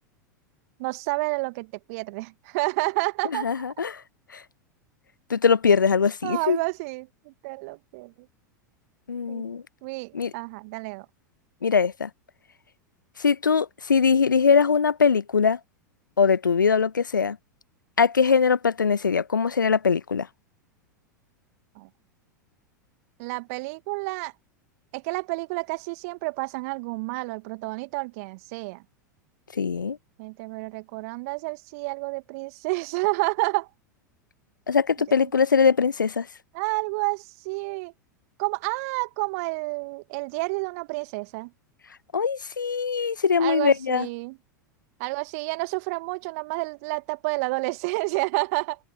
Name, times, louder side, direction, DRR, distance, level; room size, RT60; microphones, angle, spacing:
voice 1, 0.8-3.5 6.2-8.1 9.3-9.5 9.8-11.1 21.8-21.9 23.2-24.3 24.9-28.8 30.2-33.7 36.5-37.9 38.4-41.5 43.4-44.4 45.0-48.8, right 26 dB, 50° right, 1.9 m, -30 dB
voice 2, 3.4-4.0 4.3-4.4 5.3-6.6 9.1-9.6 10.1-10.3 11.6-12.1 13.2-15.6 16.2-17.4 18.0-20.3 29.5-30.0 34.7-36.3 42.1-44.1, left 6 dB, 85° left, 0.4 m, -21 dB
figure-of-eight pair, 90°, 10 cm